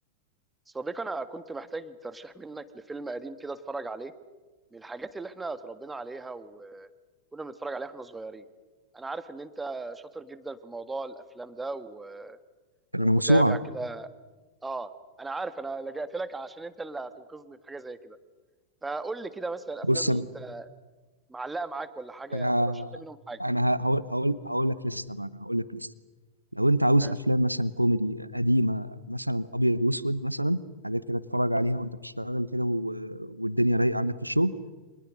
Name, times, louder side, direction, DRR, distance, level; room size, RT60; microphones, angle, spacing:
voice 1, 0.7-4.1 4.7-6.9 7.3-8.4 8.9-12.4 13.0-14.1 14.6-14.9 15.2-18.2 18.8-20.7 21.3-22.5 22.9-23.4 27.0-27.1, right 3 dB, 10° right, 12 dB, 1.7 m, -37 dB
voice 2, 12.9-13.6 19.9-20.2 22.3-23.0 23.4-25.9 26.5-34.5, equal, 90° right, 17 dB, 1.0 m, -26 dB
29.5 x 26.0 x 6.4 m, 1.3 s
figure-of-eight pair, 90°, 0 cm